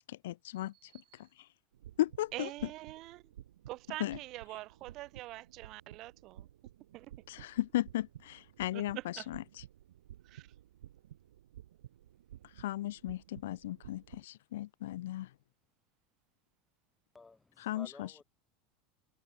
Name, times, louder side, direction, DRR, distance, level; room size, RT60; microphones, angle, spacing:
voice 1, 0.1-1.5 2.0-2.7 4.0-4.2 7.3-9.4 12.6-15.3 17.6-18.2, left 15 dB, 80° left, 0.4 m, -36 dB
sound 1, 1.7-14.3, right 12 dB, 90° right, 2.6 m, -54 dB
voice 2, 2.3-3.2 3.7-6.5 6.9-7.1 8.7-9.3 10.2-10.5, right 18 dB, 55° right, 2.9 m, -44 dB
voice 3, 17.1-18.2, left 3 dB, 15° left, 7.2 m, -53 dB
supercardioid pair, 105°, 0 cm